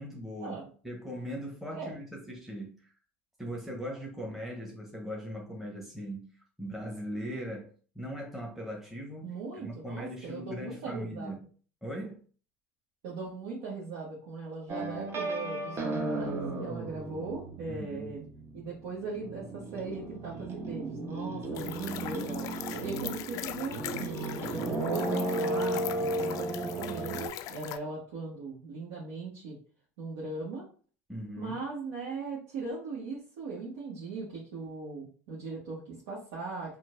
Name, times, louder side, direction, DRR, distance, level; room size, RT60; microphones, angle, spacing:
voice 1, 0.0-2.9 3.4-9.4 9.6-11.5 11.8-12.2 17.7-18.1 31.1-31.6, equal, 5° right, -1 dB, 1.1 m, -39 dB
voice 2, 9.2-11.4 13.0-18.2 18.5-22.5 22.8-29.6 30.0-30.6 31.4-36.8, right 3 dB, 65° right, -6 dB, 1.4 m, -39 dB
sound 1, 14.7-18.8 19.0-27.3, right 2 dB, 35° right, 1.0 m, -34 dB
sound 2, 21.5-27.8, left 13 dB, 50° left, 0.3 m, -41 dB
5.8 x 2.5 x 2.6 m, 0.41 s
hypercardioid pair, 75°, 7 cm